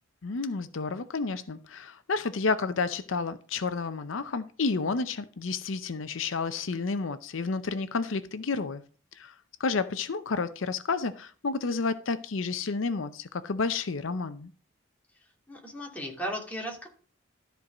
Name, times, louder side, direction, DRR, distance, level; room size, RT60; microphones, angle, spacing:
voice 1, 0.2-8.8 9.1-9.3 9.6-14.5, left 4 dB, 75° left, 0.6 m, -30 dB
voice 2, 15.5-16.9, equal, 10° left, 2.7 m, -36 dB
13.0 x 4.6 x 6.1 m
head